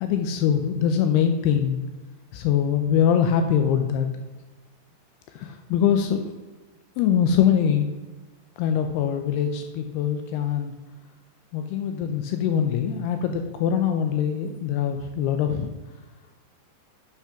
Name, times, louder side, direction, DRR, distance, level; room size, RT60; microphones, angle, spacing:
voice 1, 0.0-1.8 2.3-4.1 5.3-6.3 7.0-7.9 8.6-10.7 11.5-15.7, left 8 dB, 90° left, 6 dB, 2.3 m, -23 dB
8.4 x 5.9 x 5.7 m, 1.2 s
omnidirectional pair, 5.3 m